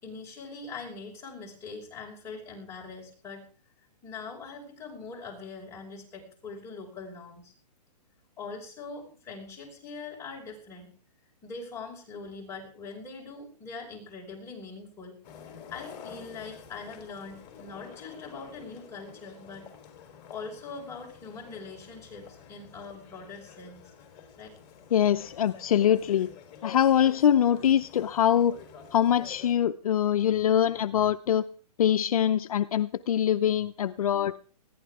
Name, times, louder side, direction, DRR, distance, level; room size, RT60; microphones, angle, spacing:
voice 1, 0.0-3.4 4.0-7.5 8.4-10.9 11.4-15.2 15.5-19.7 20.3-23.9 24.4-24.5, left 4 dB, 15° left, -2 dB, 5.8 m, -42 dB
sound 1, 15.2-29.5, left 7 dB, 30° left, 4.0 m, -49 dB
voice 2, 24.9-26.3 26.6-28.5 28.9-31.4 31.8-34.3, left 10 dB, 60° left, 13 dB, 0.7 m, -23 dB
20.5 x 15.5 x 3.6 m, 0.41 s
hypercardioid pair, 160°, 21 cm